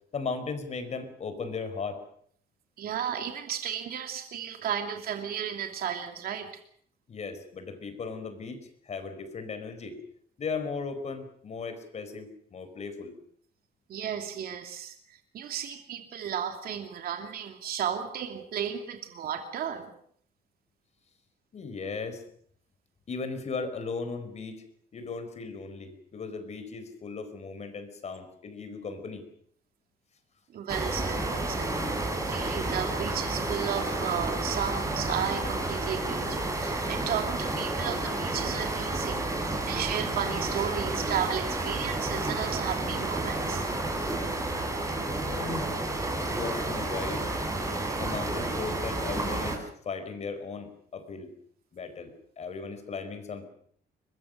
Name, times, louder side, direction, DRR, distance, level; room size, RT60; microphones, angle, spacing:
voice 1, 0.1-2.0 7.1-10.0 10.4-13.1 21.5-22.2 23.1-24.6 24.9-29.3 45.3-45.7 46.3-47.2 48.0-51.3 51.7-53.5, left 4 dB, 40° left, 10 dB, 4.6 m, -37 dB
voice 2, 2.8-6.5 13.9-14.9 15.3-19.9 30.5-31.7 32.3-43.6, right 8 dB, 60° right, 5 dB, 2.7 m, -34 dB
sound 1, 30.7-49.6, right 2 dB, 20° right, 6.0 m, -31 dB
23.0 x 22.0 x 6.6 m, 0.63 s
cardioid pair, 120°, 17 cm